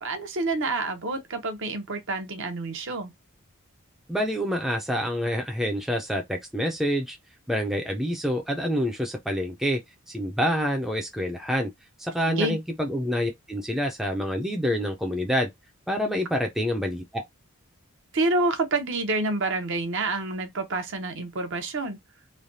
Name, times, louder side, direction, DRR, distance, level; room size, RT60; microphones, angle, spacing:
voice 1, 0.0-3.1 12.3-12.6 18.1-22.0, right 2 dB, 55° right, 0.8 m, -28 dB
voice 2, 4.1-7.2 7.5-9.8 10.1-11.7 12.0-15.5 15.9-17.2, equal, ahead, 0.4 m, -27 dB
3.2 x 2.2 x 2.6 m
head